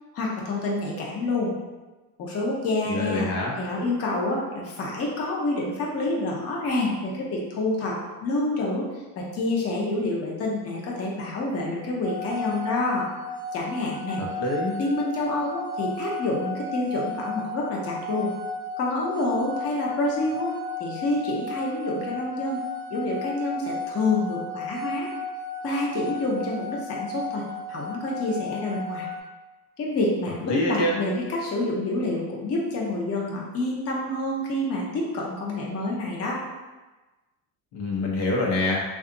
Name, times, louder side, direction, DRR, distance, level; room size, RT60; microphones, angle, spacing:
voice 1, 0.1-1.5 2.2-3.3 3.6-8.9 9.2-13.1 13.5-14.2 14.8-18.3 18.8-20.5 20.8-22.6 22.9-25.1 25.6-27.4 27.7-29.1 29.8-36.4, left 2 dB, 35° left, -3 dB, 0.7 m, -28 dB
voice 2, 2.9-3.5 14.2-14.8 30.4-30.9 37.7-38.8, left 2 dB, 75° left, -2 dB, 0.9 m, -25 dB
sound 1, 12.0-29.2, left 3 dB, 10° right, 0.4 m, -34 dB
2.7 x 2.4 x 3.7 m, 1.2 s
cardioid pair, 125°, 42 cm